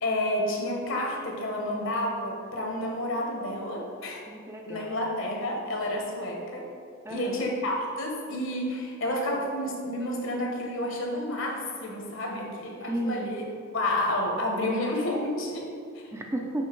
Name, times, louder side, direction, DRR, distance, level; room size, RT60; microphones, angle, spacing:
voice 1, 0.0-4.2 4.7-6.7 7.1-13.4 13.7-16.1, left 1 dB, 65° left, 0 dB, 1.2 m, -30 dB
voice 2, 4.3-4.9 7.0-7.4 12.9-13.3 16.1-16.7, right 1 dB, 15° right, 1 dB, 0.5 m, -33 dB
7.1 x 4.3 x 4.5 m, 2.4 s
head